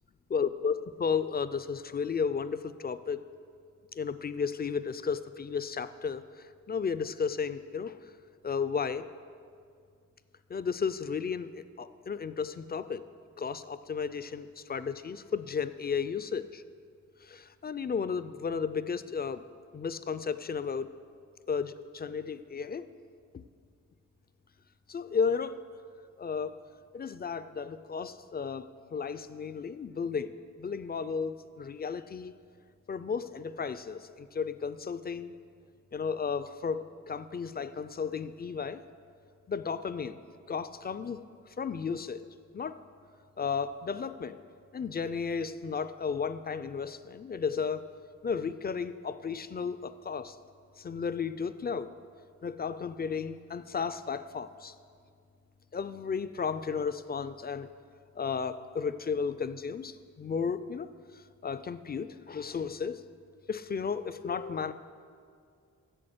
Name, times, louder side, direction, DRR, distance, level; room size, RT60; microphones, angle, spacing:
voice 1, 0.3-3.2 3.9-8.0 8.4-9.0 10.5-13.0 13.4-16.6 17.2-19.4 19.7-20.9 21.5-22.9 23.3-23.4 24.9-25.6 26.2-26.6 26.9-30.3 30.6-32.3 32.9-35.3 35.9-38.8 39.5-40.2 40.5-41.3 41.6-42.2 42.5-42.8 43.4-44.4 44.7-47.9 48.2-50.4 50.8-51.9 52.4-54.7 55.7-57.7 58.2-63.0 63.5-64.7, left 6 dB, 35° left, 13 dB, 0.4 m, -33 dB
7.8 x 7.1 x 7.8 m, 2.2 s
wide cardioid pair, 90°, 30 cm